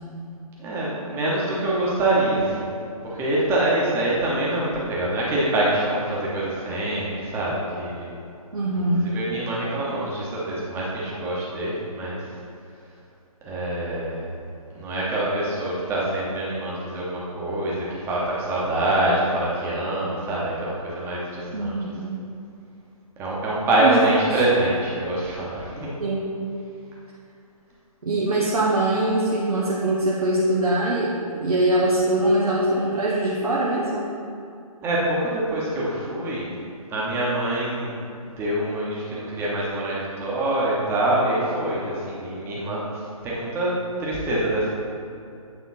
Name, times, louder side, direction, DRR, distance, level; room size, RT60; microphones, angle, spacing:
voice 1, 0.6-2.7 3.0-8.1 8.9-12.2 13.4-14.3 14.7-21.7 23.2-25.9 34.8-36.5 36.9-43.7 44.0-44.7, right 1 dB, 15° right, -6 dB, 1.1 m, -25 dB
voice 2, 8.5-9.2 21.5-22.2 23.8-24.0 24.3-24.4 26.0-26.3 28.0-34.1, right 1 dB, 75° right, -5 dB, 0.9 m, -22 dB
8.4 x 3.7 x 4.1 m, 2.5 s
figure-of-eight pair, 140°, 19 cm